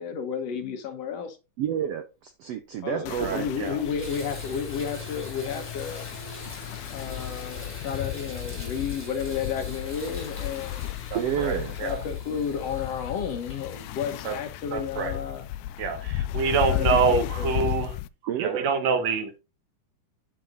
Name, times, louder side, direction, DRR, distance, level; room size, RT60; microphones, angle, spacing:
voice 1, 0.0-1.4 2.8-6.0 6.9-10.8 11.8-15.5 16.3-17.5 17.8-17.9, left 7 dB, 60° left, 1.9 m, -32 dB
voice 2, 1.6-3.5 11.1-11.8 18.2-18.7, right 10 dB, 80° right, 1.4 m, -30 dB
Water tap faucet / Bathtub (filling or washing), 2.8-2.9 3.3-15.7 16.4-16.5 17.0-17.1, equal, 5° left, 4.1 m, -44 dB
sound 1, 3.1-18.1, left 15 dB, 85° left, 1.7 m, -34 dB
voice 3, 3.2-3.8 11.1-12.0 14.3-14.4 14.7-15.2 15.8-18.0 18.4-19.4, right 5 dB, 60° right, 2.5 m, -26 dB
8.9 x 7.6 x 2.6 m
omnidirectional pair, 3.8 m